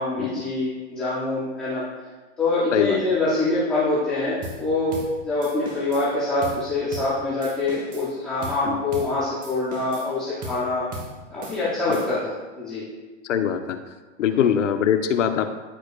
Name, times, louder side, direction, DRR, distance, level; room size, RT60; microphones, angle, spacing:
voice 1, 0.0-1.8 2.4-5.0 5.2-10.9 11.3-12.8 14.3-14.5, left 2 dB, 5° left, -11 dB, 0.3 m, -25 dB
sound 1, 4.4-4.6 4.9-5.1 5.4-6.1 6.4-6.6 6.9-7.1 7.4-8.1 8.4-8.6 8.9-9.1 9.4-10.1 10.4-10.6 10.9-11.1 11.4-12.3, right 1 dB, 20° right, 1.3 m, -37 dB
voice 2, 13.3-13.8 14.2-15.5, left 8 dB, 80° left, 8 dB, 0.9 m, -22 dB
14.0 x 4.9 x 2.3 m, 1.3 s
hypercardioid pair, 155°, 36 cm